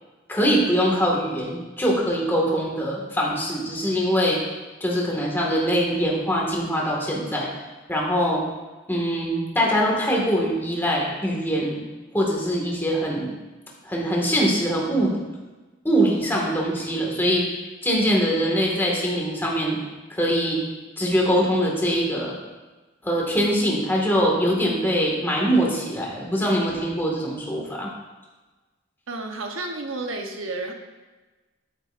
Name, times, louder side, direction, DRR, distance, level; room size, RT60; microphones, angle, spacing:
voice 1, 0.3-4.4 4.8-7.5 7.9-8.4 8.9-11.8 12.1-13.3 13.8-15.2 15.8-17.5 17.8-19.8 20.1-20.6 21.0-22.4 23.0-27.9, equal, 10° left, -3 dB, 1.9 m, -23 dB
voice 2, 29.1-30.7, right 2 dB, 90° right, 3 dB, 1.1 m, -31 dB
13.0 x 8.1 x 2.6 m, 1.2 s
head